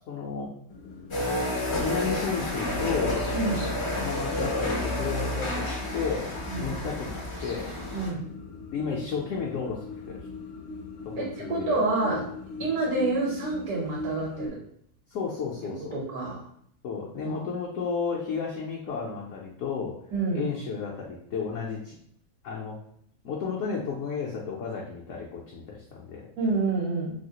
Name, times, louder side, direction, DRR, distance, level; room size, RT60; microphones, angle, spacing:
voice 1, 0.1-0.5 1.8-3.2 4.0-7.7 8.7-10.2 11.0-11.8 12.6-12.8 15.1-16.0 16.8-20.0 20.3-21.9 22.4-22.8 23.2-26.3, left 5 dB, 65° left, -3 dB, 0.8 m, -32 dB
sound 1, 0.7-14.5, left 2 dB, 85° left, 1.1 m, -41 dB
sound 2, 1.1-8.1, left 1 dB, 45° left, 0.4 m, -30 dB
voice 2, 7.9-8.2 11.1-12.2 12.6-14.6 15.6-16.4 20.1-20.5 26.4-27.1, right 3 dB, 75° right, -3 dB, 1.5 m, -28 dB
3.2 x 2.7 x 2.8 m, 0.67 s
omnidirectional pair, 1.6 m